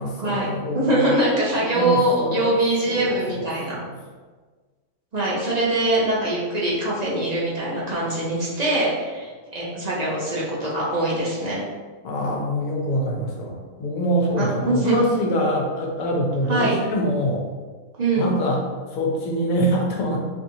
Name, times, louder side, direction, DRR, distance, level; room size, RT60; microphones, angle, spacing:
voice 1, 0.0-1.1 1.6-2.5 2.9-3.9 12.0-17.5 18.2-18.6 18.9-20.2, equal, 80° left, -1 dB, 1.1 m, -25 dB
voice 2, 0.7-3.8 5.1-11.6 14.4-15.0 16.5-16.7 18.0-18.3, right 1 dB, 50° right, -6 dB, 0.5 m, -23 dB
2.7 x 2.7 x 2.6 m, 1.4 s
omnidirectional pair, 1.4 m